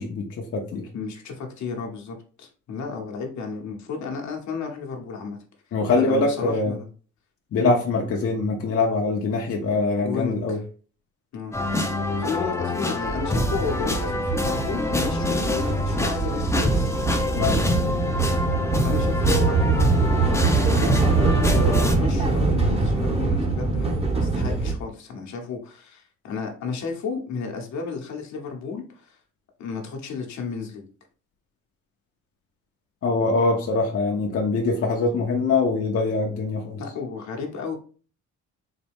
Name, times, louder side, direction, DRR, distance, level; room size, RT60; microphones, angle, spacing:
voice 1, 0.0-0.9 5.7-6.8 7.5-10.6 17.4-17.7 33.0-36.8, left 3 dB, 50° left, 0.7 m, -23 dB
voice 2, 0.9-5.4 6.0-6.9 7.5-7.8 10.0-10.6 11.3-11.9 12.2-17.0 18.8-20.1 20.8-29.2 29.6-30.9 36.8-37.8, left 5 dB, 70° left, 1.0 m, -32 dB
sound 1, 11.5-22.0, left 1 dB, 10° left, 0.6 m, -26 dB
sound 2, 13.0-24.7, right 3 dB, 20° right, 0.8 m, -23 dB
4.0 x 2.3 x 3.5 m
cardioid pair, 90°, 30 cm